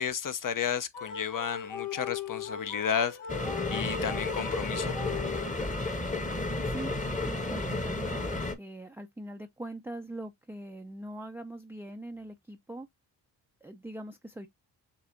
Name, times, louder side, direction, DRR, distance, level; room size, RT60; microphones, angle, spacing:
voice 1, 0.0-3.2 3.7-5.0, left 8 dB, 40° left, 0.7 m, -32 dB
sound 1, 0.9-5.8, left 8 dB, 75° left, 1.3 m, -39 dB
sound 2, 3.3-8.5, left 2 dB, 15° left, 1.0 m, -32 dB
voice 2, 7.3-12.9 13.6-14.5, right 1 dB, 5° right, 0.4 m, -42 dB
6.8 x 2.8 x 2.5 m
supercardioid pair, 50°, 48 cm